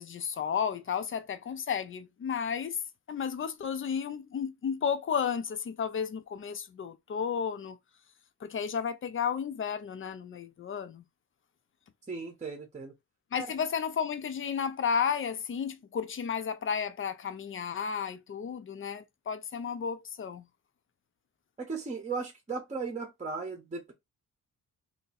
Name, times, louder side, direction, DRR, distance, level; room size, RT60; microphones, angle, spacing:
voice 1, 0.0-2.8 3.1-7.8 8.4-11.0 13.3-20.5, left 7 dB, 35° left, 0.5 m, -33 dB
voice 2, 12.1-12.9 13.4-13.5 21.6-23.9, right 4 dB, 20° right, 0.8 m, -36 dB
2.8 x 2.6 x 4.0 m
wide cardioid pair, 130°, 34 cm